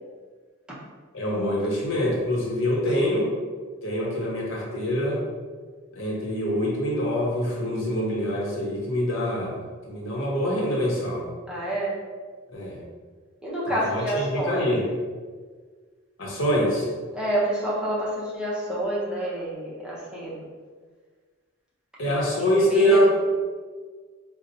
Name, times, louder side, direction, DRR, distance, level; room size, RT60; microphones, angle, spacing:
voice 1, 1.1-3.3 3.8-5.2 5.9-9.6 9.9-11.3 12.5-12.8 13.8-14.8 16.2-16.9 22.0-23.1, equal, 70° left, -3 dB, 0.8 m, -24 dB
voice 2, 11.5-12.0 13.4-14.7 17.1-20.4 22.1-23.1, right 1 dB, 5° right, -8 dB, 0.6 m, -28 dB
4.0 x 2.0 x 2.6 m, 1.5 s
head